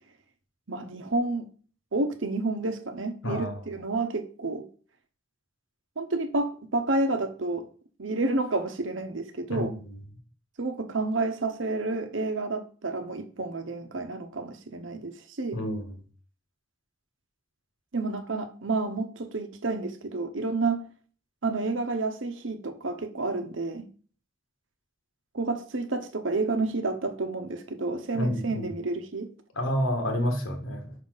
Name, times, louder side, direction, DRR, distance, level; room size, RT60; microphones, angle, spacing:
voice 1, 0.7-1.5 1.9-4.7 6.0-7.7 8.0-9.7 10.6-15.6 17.9-20.9 21.4-23.9 25.3-29.3, right 3 dB, 70° right, 0.9 m, -30 dB
voice 2, 3.2-3.6 9.5-9.7 15.5-16.0 28.1-28.8 29.5-30.9, equal, 90° left, 1.7 m, -29 dB
5.7 x 5.6 x 4.0 m
head